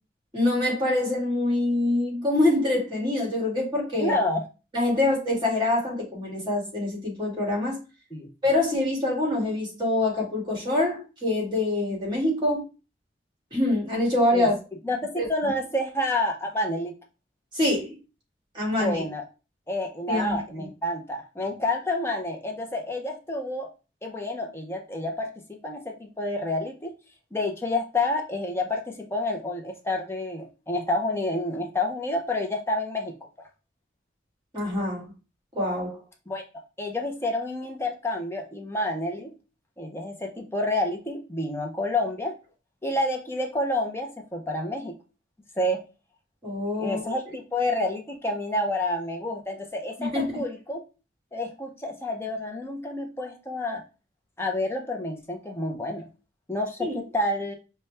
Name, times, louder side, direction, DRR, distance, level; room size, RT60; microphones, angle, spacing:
voice 1, 0.3-4.2 4.7-7.8 8.4-12.7 13.5-14.6 15.2-15.3 17.5-18.0 18.5-19.0 20.1-20.6 34.5-35.1 35.5-36.0 46.4-47.2 50.0-50.4 56.8-57.0, left 2 dB, 25° right, -3 dB, 1.9 m, -25 dB
voice 2, 4.0-4.4 8.1-8.3 14.3-14.5 14.8-16.9 18.7-19.2 19.7-23.7 24.0-26.9 27.3-33.5 36.3-36.4 36.8-39.3 39.8-42.3 42.8-45.0 45.6-45.8 46.8-50.8 51.3-53.8 54.4-56.1 56.5-57.5, left 1 dB, 15° left, 2 dB, 0.6 m, -29 dB
5.5 x 2.2 x 3.3 m, 0.32 s
head